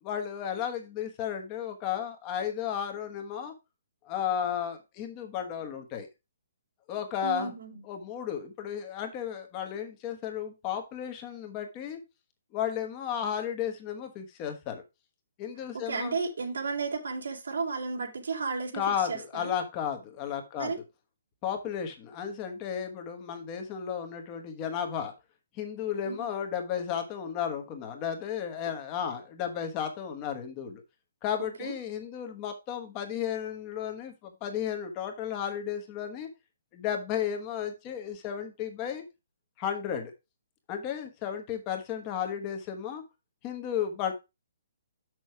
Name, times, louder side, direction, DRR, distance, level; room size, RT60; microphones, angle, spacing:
voice 1, 0.0-3.5 4.0-6.1 6.9-7.5 7.8-12.0 12.5-14.8 15.4-16.1 18.7-20.7 21.4-25.1 25.5-30.8 31.2-36.3 36.7-39.0 39.6-40.1 40.7-43.0 43.4-44.1, left 8 dB, 20° left, 1.3 m, -33 dB
voice 2, 7.2-7.8 15.7-18.8 19.1-19.5 20.6-20.8 26.0-26.3 31.4-31.7, right 4 dB, 90° right, 2.7 m, -33 dB
6.3 x 6.2 x 4.6 m
hypercardioid pair, 170°, 0 cm